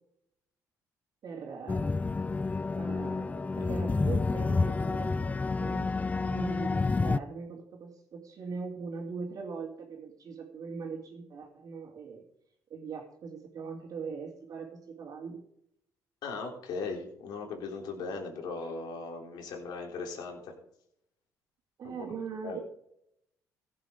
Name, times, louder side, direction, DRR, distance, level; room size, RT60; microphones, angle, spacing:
voice 1, 1.2-1.9 2.7-5.9 6.2-12.2 12.7-15.4 21.8-22.6, right 5 dB, 55° right, -2 dB, 3.0 m, -41 dB
sound 1, 1.7-7.2, left 3 dB, 20° left, 0.4 m, -29 dB
voice 2, 16.2-20.5 21.8-22.0 22.4-22.6, left 4 dB, 75° left, 2 dB, 3.7 m, -38 dB
15.5 x 7.7 x 5.1 m, 0.73 s
supercardioid pair, 75°, 7 cm